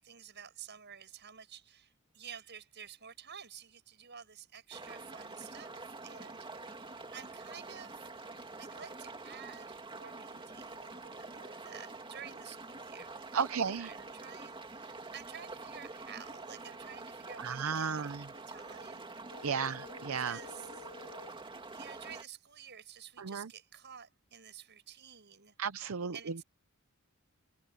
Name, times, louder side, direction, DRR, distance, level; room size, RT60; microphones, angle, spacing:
voice 1, 0.0-6.5 7.1-8.1 8.6-19.1 20.2-20.9 21.7-25.6 26.1-26.4, right 8 dB, 55° right, 7.3 m, -51 dB
sound 1, 4.7-22.2, right 3 dB, 25° right, 2.2 m, -46 dB
voice 2, 13.3-13.9 17.4-18.2 19.4-20.4 23.2-23.5 25.6-26.1, right 6 dB, 70° right, 0.6 m, -34 dB
Telephone, 19.3-21.3, left 4 dB, 85° left, 1.8 m, -51 dB
head